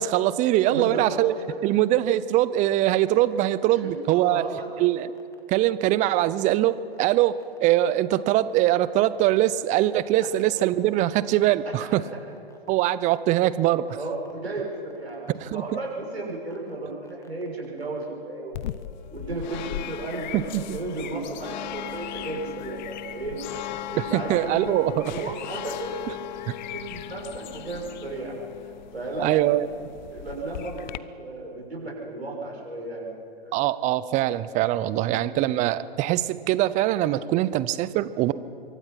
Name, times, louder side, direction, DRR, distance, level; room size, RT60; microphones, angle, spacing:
voice 1, 0.0-1.3 1.6-4.4 4.8-5.1 5.5-12.0 12.7-13.9 15.4-15.6 20.3-20.8 24.0-24.9 25.2-25.3 26.5-26.6 29.2-29.7 33.5-38.3, right 14 dB, 25° right, 16 dB, 0.7 m, -22 dB
voice 2, 0.7-1.6 3.8-4.7 11.7-12.2 12.7-12.8 13.9-18.7 19.1-23.4 23.9-26.1 26.6-28.3 28.9-29.8 30.1-33.2 33.5-33.6 34.7-35.5, right 2 dB, 90° right, -2 dB, 7.0 m, -34 dB
sound 1, 2.4-18.1, left 3 dB, 10° left, 2.5 m, -53 dB
sound 2, 18.5-31.0, left 12 dB, 45° left, 0.9 m, -37 dB
26.5 x 24.0 x 5.9 m, 2.5 s
figure-of-eight pair, 115°, 31 cm